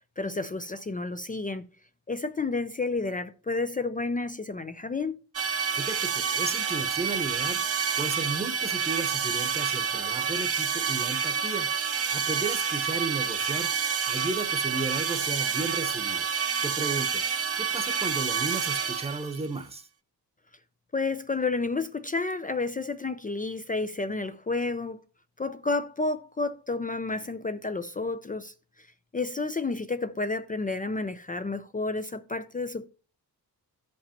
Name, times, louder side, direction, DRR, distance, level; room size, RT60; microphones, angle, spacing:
voice 1, 0.2-1.7 2.1-5.2 20.9-25.0 25.4-28.5 29.1-32.9, left 3 dB, 20° left, 0.4 m, -30 dB
sound 1, 5.4-19.5, right 6 dB, 35° right, 0.6 m, -28 dB
voice 2, 5.7-7.6 8.0-13.7 14.1-16.3 16.6-17.2 17.6-19.9, right 3 dB, 15° right, 0.9 m, -34 dB
13.5 x 5.3 x 2.9 m
wide cardioid pair, 125°, 40 cm